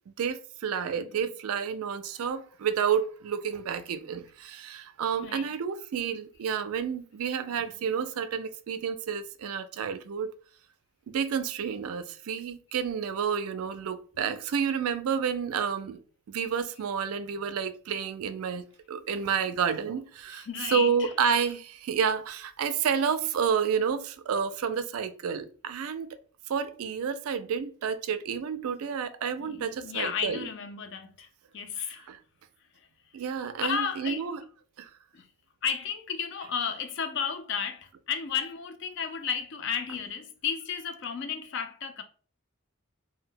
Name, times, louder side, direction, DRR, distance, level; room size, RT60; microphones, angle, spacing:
voice 1, 0.2-10.3 11.1-16.0 16.3-26.2 26.5-30.5 32.1-32.2 33.1-34.4 34.8-34.9, right 7 dB, 75° right, 0.3 m, -30 dB
voice 2, 1.0-1.3 5.2-5.6 20.3-21.1 21.4-21.5 29.3-32.1 32.8-32.9 33.4-34.3 35.1-35.3 35.6-42.0, left 7 dB, 55° left, 0.4 m, -33 dB
2.1 x 2.0 x 3.7 m
head